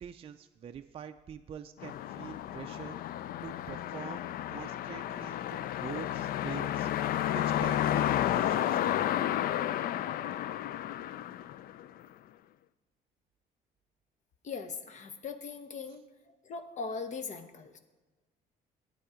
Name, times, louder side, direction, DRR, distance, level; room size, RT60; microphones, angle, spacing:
voice 1, 0.0-4.2 4.5-8.1 8.3-9.0, right 8 dB, 35° right, 6 dB, 0.4 m, -45 dB
sound 1, 1.8-12.0, left 12 dB, 60° left, 0.4 m, -32 dB
voice 2, 14.4-16.0 16.4-17.8, left 5 dB, 45° left, 9 dB, 0.8 m, -40 dB
9.1 x 8.5 x 4.9 m, 1.2 s
cardioid pair, 110°, 17 cm